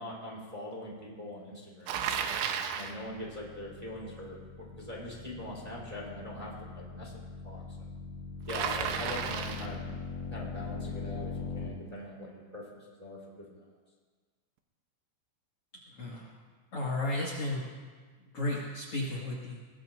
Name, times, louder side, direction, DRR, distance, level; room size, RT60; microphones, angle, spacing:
voice 1, 0.0-2.3 2.7-7.9 8.5-9.8 10.3-13.6, left 1 dB, 10° right, -4 dB, 2.5 m, -42 dB
Bicycle, 1.9-3.0 8.5-9.8, right 8 dB, 80° right, 3.0 m, -33 dB
sound 1, 3.0-11.7, left 4 dB, 70° left, 2.5 m, -42 dB
voice 2, 15.9-16.3 16.7-17.6 18.2-19.6, left 2 dB, 90° left, -6 dB, 1.2 m, -34 dB
22.0 x 19.5 x 2.6 m, 1.5 s
omnidirectional pair, 6.0 m